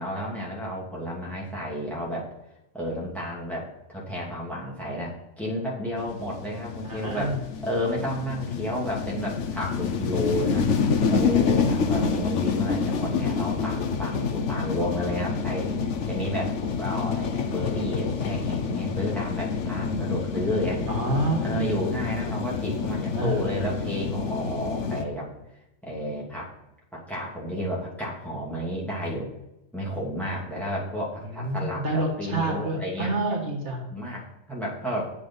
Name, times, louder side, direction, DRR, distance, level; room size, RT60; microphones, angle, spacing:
voice 1, 0.0-2.3 2.7-7.4 7.6-10.7 11.1-15.7 16.1-20.8 21.4-25.3 25.8-26.5 26.9-29.3 29.7-33.1 33.9-35.1, equal, ahead, -5 dB, 2.8 m, -31 dB
sound 1, 6.0-25.0, left 5 dB, 70° left, 1.2 m, -28 dB
voice 2, 6.8-7.4 20.9-21.8 23.1-23.7 31.3-33.9, right 2 dB, 65° right, 1 dB, 2.2 m, -28 dB
9.5 x 7.6 x 5.6 m, 0.89 s
omnidirectional pair, 1.3 m